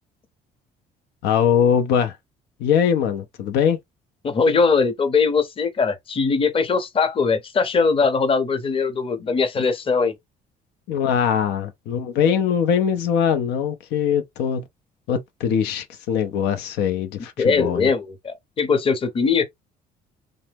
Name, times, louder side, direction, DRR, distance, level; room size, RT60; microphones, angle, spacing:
voice 1, 1.2-2.1 2.6-3.8 10.9-14.6 15.1-17.9, left 8 dB, 85° left, 0.5 m, -21 dB
voice 2, 4.2-10.2 17.4-19.4, left 5 dB, 30° left, 0.7 m, -21 dB
3.0 x 2.0 x 3.3 m
cardioid pair, 110°, 17 cm